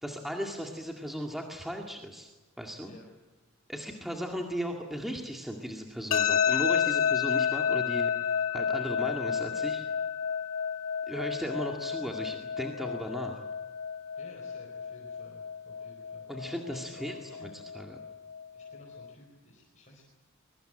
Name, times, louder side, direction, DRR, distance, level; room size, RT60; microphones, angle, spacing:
voice 1, 0.0-2.3 2.6-2.9 3.7-9.8 11.1-13.4 16.3-18.0, equal, ahead, 1 dB, 2.1 m, -36 dB
sound 1, 6.1-19.1, left 7 dB, 80° left, 1.3 m, -31 dB
voice 2, 14.2-17.5 18.5-20.0, equal, 35° left, 0 dB, 4.7 m, -54 dB
24.5 x 22.5 x 7.9 m, 1.1 s
head